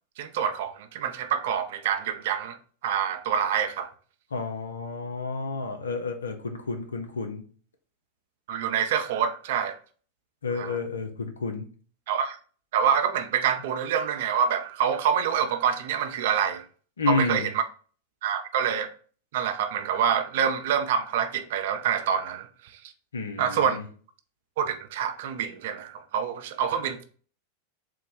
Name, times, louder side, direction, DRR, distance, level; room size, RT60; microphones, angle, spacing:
voice 1, 0.2-2.6 2.8-3.9 8.5-9.8 10.5-10.8 12.1-12.4 12.7-16.7 17.1-17.6 18.2-18.9 19.3-22.7 23.4-23.8 24.6-27.0, right 8 dB, 60° right, 0.5 m, -26 dB
voice 2, 4.3-7.4 10.4-11.7 17.0-17.5 23.1-23.8, left 4 dB, 80° left, 0.6 m, -30 dB
3.8 x 2.2 x 4.5 m
figure-of-eight pair, 90°, 0 cm